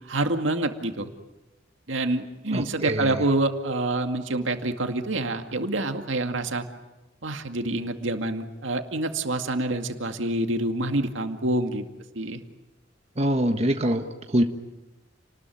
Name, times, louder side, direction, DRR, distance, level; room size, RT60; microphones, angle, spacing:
voice 1, 0.1-1.1 1.9-6.6 7.2-11.8 12.1-12.4, right 2 dB, 75° right, 6 dB, 2.2 m, -27 dB
voice 2, 2.5-3.2 13.2-14.4, right 1 dB, 35° right, 5 dB, 1.4 m, -24 dB
30.0 x 20.0 x 9.4 m, 1.1 s
head